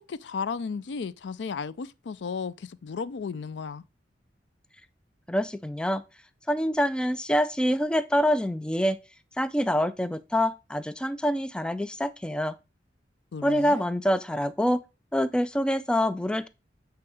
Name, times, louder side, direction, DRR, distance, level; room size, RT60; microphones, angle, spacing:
voice 1, 0.1-3.8 13.3-13.8, left 5 dB, 85° left, 0.4 m, -34 dB
voice 2, 5.3-6.0 6.5-9.0 9.4-12.5 13.4-14.8 15.1-16.5, equal, 5° left, 0.4 m, -26 dB
8.7 x 3.6 x 4.8 m
head